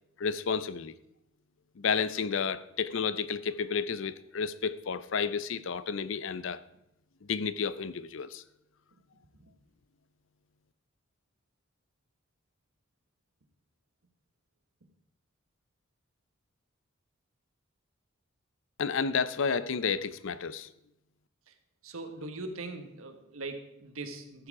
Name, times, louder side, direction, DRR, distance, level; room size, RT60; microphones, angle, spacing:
voice 1, 0.2-0.9 1.8-6.6 7.3-8.4 18.8-20.7, left 6 dB, 65° left, 0.5 m, -31 dB
voice 2, 21.8-24.5, right 2 dB, 85° right, 1.4 m, -40 dB
14.0 x 7.4 x 4.8 m
head